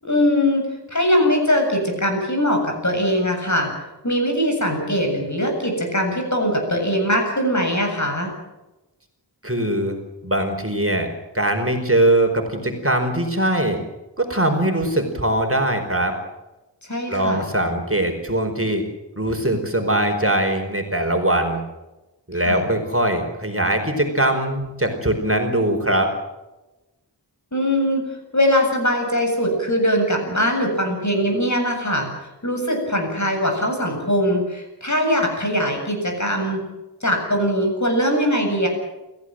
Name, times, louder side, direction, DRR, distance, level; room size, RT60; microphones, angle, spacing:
voice 1, 0.0-3.7 4.0-8.3 16.9-17.4 22.4-22.7 27.5-28.1 28.3-32.1 32.4-36.6 37.0-38.7, equal, 40° left, 3 dB, 7.8 m, -21 dB
voice 2, 9.4-11.1 11.3-13.8 14.2-16.1 17.1-18.8 19.2-21.6 22.3-26.1, right 1 dB, 30° right, 4 dB, 4.6 m, -21 dB
29.0 x 15.5 x 7.8 m, 1.0 s
wide cardioid pair, 50°, 42 cm